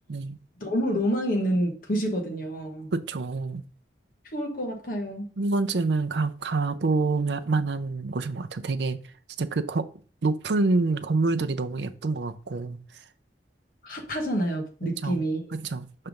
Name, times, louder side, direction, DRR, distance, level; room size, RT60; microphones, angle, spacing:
voice 1, 0.6-2.9 4.3-5.3 13.8-15.5, equal, 50° left, 1.3 m, -28 dB
voice 2, 2.9-3.6 5.4-9.0 9.4-9.8 10.2-12.8 15.0-15.2 15.6-16.1, right 3 dB, 80° right, 0.6 m, -27 dB
5.8 x 3.3 x 5.1 m
head